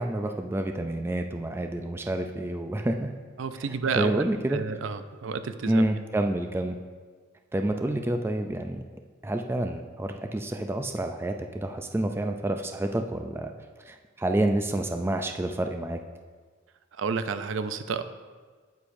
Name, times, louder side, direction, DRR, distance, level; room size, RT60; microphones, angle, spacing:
voice 1, 0.0-3.1 3.9-4.6 5.7-6.8 7.5-8.8 9.2-13.5 13.8-16.0, right 1 dB, 10° right, 5 dB, 0.3 m, -28 dB
voice 2, 3.4-4.2 4.5-5.9 16.9-18.0, right 5 dB, 75° right, 11 dB, 0.4 m, -30 dB
9.3 x 8.6 x 2.6 m, 1.5 s
head